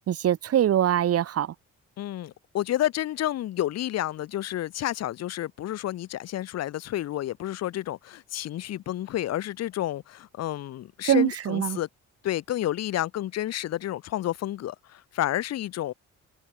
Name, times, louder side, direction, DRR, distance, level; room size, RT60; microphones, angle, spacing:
voice 1, 0.1-1.5 11.0-11.8, right 11 dB, 50° right, 0.8 m, -23 dB
voice 2, 2.0-11.9 12.2-15.9, left 13 dB, 55° left, 0.6 m, -30 dB
cardioid pair, 90°, 30 cm